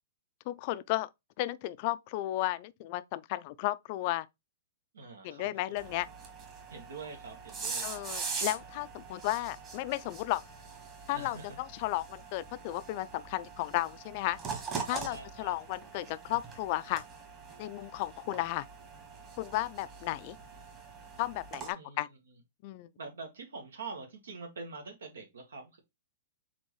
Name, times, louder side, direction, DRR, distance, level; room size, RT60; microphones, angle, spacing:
voice 1, 0.5-1.1 1.4-4.3 5.2-6.1 7.8-10.4 11.1-14.4 14.9-17.0 17.6-18.7 19.4-20.4 21.2-22.1 22.6-22.9, left 17 dB, 40° left, 0.3 m, -34 dB
voice 2, 4.9-5.8 6.7-8.1 11.1-11.6 15.1-15.6 21.7-22.0 23.0-25.8, right 4 dB, 90° right, 1.4 m, -45 dB
sound 1, 5.8-21.7, right 5 dB, 25° right, 1.4 m, -43 dB
4.4 x 3.9 x 3.0 m
hypercardioid pair, 150°, 0 cm